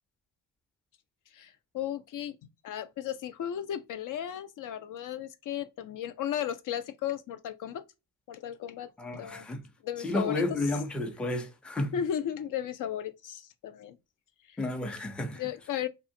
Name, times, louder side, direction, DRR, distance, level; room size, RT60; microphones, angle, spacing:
voice 1, 1.3-2.4 2.6-7.8 8.3-9.5 9.8-10.6 11.9-14.0 15.3-15.9, left 10 dB, 60° left, 0.5 m, -35 dB
voice 2, 9.0-9.6 10.0-11.9 14.6-15.4, left 2 dB, 5° left, 0.4 m, -32 dB
2.7 x 2.3 x 2.6 m
cardioid pair, 85°, 37 cm